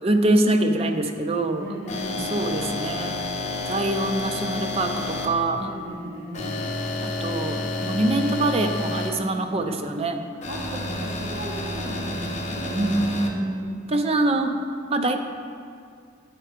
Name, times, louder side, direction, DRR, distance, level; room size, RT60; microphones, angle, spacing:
voice 1, 0.0-1.7 2.1-3.3 3.7-5.7 7.0-10.2 12.7-13.1 13.3-14.5 14.9-15.2, right 2 dB, 30° right, 6 dB, 0.5 m, -24 dB
voice 2, 1.6-2.4 5.5-6.7 10.4-13.4, equal, 50° right, -3 dB, 1.3 m, -35 dB
sound 1, 1.9-5.3 6.3-9.1 10.4-13.3, left 2 dB, 35° left, 0.8 m, -30 dB
8.6 x 4.4 x 4.9 m, 2.2 s
head